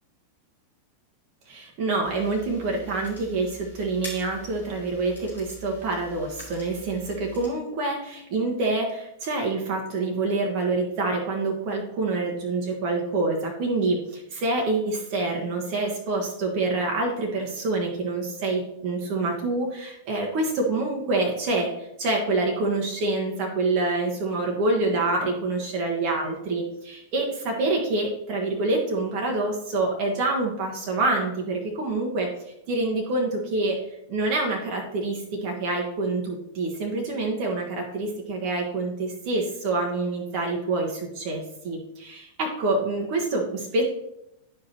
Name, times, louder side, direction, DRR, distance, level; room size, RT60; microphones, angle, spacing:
voice 1, 1.5-32.3 32.7-33.8 34.1-43.8, right 2 dB, 45° right, 0 dB, 1.4 m, -26 dB
sound 1, 2.0-7.5, equal, 75° left, 3.1 m, -44 dB
11.0 x 5.1 x 3.0 m, 0.80 s
figure-of-eight pair, 90°, 0 cm